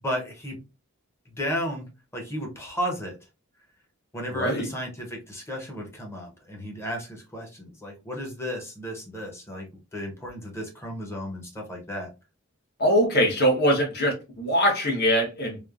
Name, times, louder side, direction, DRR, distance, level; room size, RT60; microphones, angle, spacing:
voice 1, 0.0-0.6 1.4-1.9 2.1-3.1 4.1-9.7 9.9-12.1, equal, 10° left, 0.7 m, -33 dB
voice 2, 4.3-4.7 12.8-15.6, equal, 50° left, 1.0 m, -22 dB
3.1 x 2.0 x 2.4 m
head